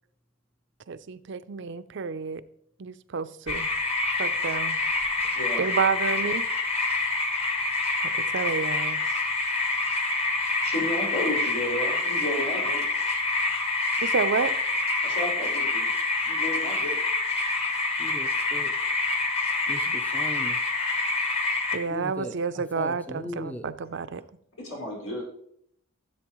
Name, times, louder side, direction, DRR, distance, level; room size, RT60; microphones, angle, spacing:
voice 1, 0.9-2.4 2.8-3.7 4.2-4.8 5.6-6.4 8.3-9.0 14.0-14.5 19.9-20.0 21.7-24.2, right 5 dB, 60° right, 13 dB, 0.5 m, -29 dB
sound 1, 3.5-21.8, left 3 dB, 30° left, 1.2 m, -27 dB
voice 2, 10.6-12.8 15.0-15.9 16.2-17.0 24.6-25.2, left 1 dB, 90° left, -2 dB, 4.8 m, -32 dB
voice 3, 18.0-18.7 19.7-20.6 21.9-22.4 22.8-23.6, equal, 10° left, 7 dB, 0.5 m, -38 dB
14.0 x 7.8 x 3.0 m, 0.69 s
head